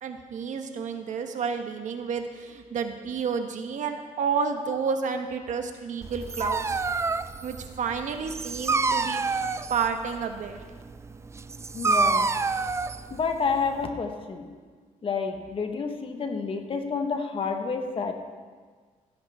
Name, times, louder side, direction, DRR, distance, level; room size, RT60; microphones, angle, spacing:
voice 1, 0.0-6.8 7.4-10.6, right 6 dB, 60° right, 6 dB, 1.1 m, -30 dB
Dog, 6.0-13.9, right 4 dB, 20° right, 0.4 m, -28 dB
voice 2, 11.7-12.3 13.1-14.5 15.0-18.1, left 5 dB, 40° left, 5 dB, 1.3 m, -29 dB
16.0 x 10.5 x 3.5 m, 1.5 s
cardioid pair, 110°, 14 cm